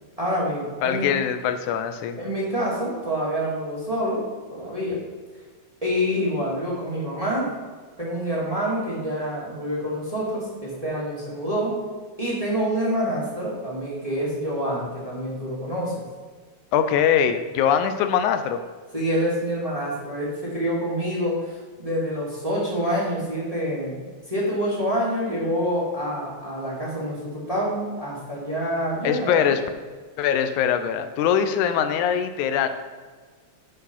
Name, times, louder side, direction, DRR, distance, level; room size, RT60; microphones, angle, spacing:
voice 1, 0.2-1.1 2.2-4.2 4.5-5.0 5.8-7.5 8.0-11.8 12.2-16.0 18.9-21.5 21.8-24.0 24.3-29.5, equal, 15° right, -6 dB, 2.0 m, -27 dB
voice 2, 0.8-2.2 16.7-18.6 29.0-29.6 30.2-32.7, left 8 dB, 85° left, 9 dB, 2.1 m, -22 dB
10.5 x 4.7 x 5.4 m, 1.5 s
omnidirectional pair, 3.4 m